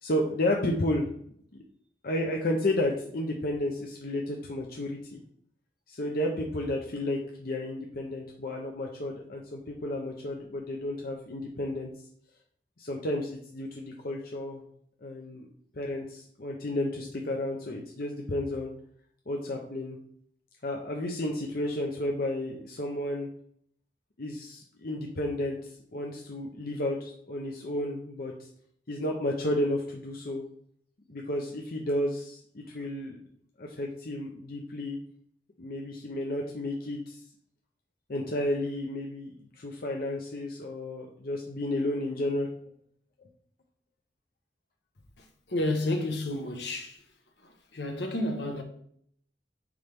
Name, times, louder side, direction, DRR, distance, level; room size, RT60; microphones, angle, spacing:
voice 1, 0.0-1.0 2.0-5.2 5.9-11.9 12.8-14.6 15.0-15.5 15.8-18.7 19.3-20.0 20.6-23.3 24.2-25.6 25.9-28.3 28.9-30.4 31.1-33.2 33.6-35.0 35.6-37.2 38.1-42.5, left 1 dB, 55° left, 0.9 m, -32 dB
voice 2, 45.2-47.0 47.4-48.6, left 1 dB, 75° left, 1.2 m, -31 dB
9.8 x 3.3 x 3.6 m
head